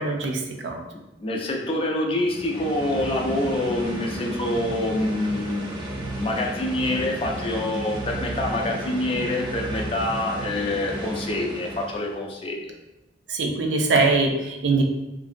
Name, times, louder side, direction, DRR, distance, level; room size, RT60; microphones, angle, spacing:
voice 1, 0.0-0.8 13.3-14.8, right 3 dB, 80° right, 2 dB, 0.4 m, -22 dB
voice 2, 0.9-5.7 6.2-12.7, left 1 dB, 30° left, 0 dB, 0.4 m, -26 dB
sound 1, 2.2-12.2, right 1 dB, 25° right, 0.5 m, -33 dB
2.7 x 2.6 x 2.5 m, 0.95 s
head